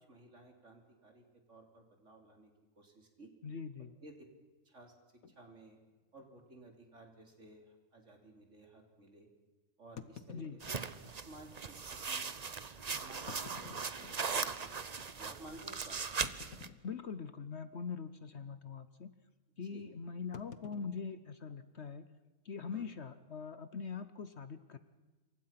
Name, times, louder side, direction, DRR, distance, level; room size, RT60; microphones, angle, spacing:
voice 1, 0.1-1.2 1.5-2.5 2.8-3.3 4.0-4.1 4.7-4.9 5.4-5.8 6.1-9.3 9.8-10.4 10.7-10.9 11.2-11.8 12.1-12.3 13.0-16.0 19.7-19.8 22.7-22.9, right 2 dB, 55° right, 3 dB, 3.9 m, -55 dB
voice 2, 3.4-3.9 10.3-10.6 16.8-19.1 19.6-22.1 22.4-24.8, left 5 dB, 50° left, 12 dB, 1.1 m, -43 dB
sound 1, 5.2-5.4 6.1-6.3 6.6-6.7 7.3-7.4 10.0-11.2 12.0-12.1 13.1-14.5 15.1-15.2 16.2-17.3 17.6-18.0 18.2-18.5 20.3-22.0, left 7 dB, 70° left, 1.5 m, -52 dB
sound 2, 10.6-16.7, right 5 dB, 35° right, 0.8 m, -39 dB
27.0 x 24.0 x 5.9 m, 1.2 s
omnidirectional pair, 1.6 m